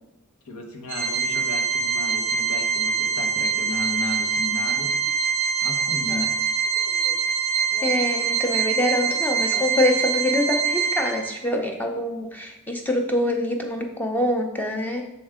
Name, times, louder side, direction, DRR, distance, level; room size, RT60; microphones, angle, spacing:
voice 1, 0.5-4.9 5.6-6.3, left 3 dB, 80° left, 2 dB, 1.1 m, -34 dB
Organ, 0.9-11.5, right 6 dB, 10° right, 1.0 m, -24 dB
voice 2, 7.7-15.1, left 1 dB, 10° left, 2 dB, 0.6 m, -25 dB
6.2 x 4.5 x 3.6 m, 0.87 s
head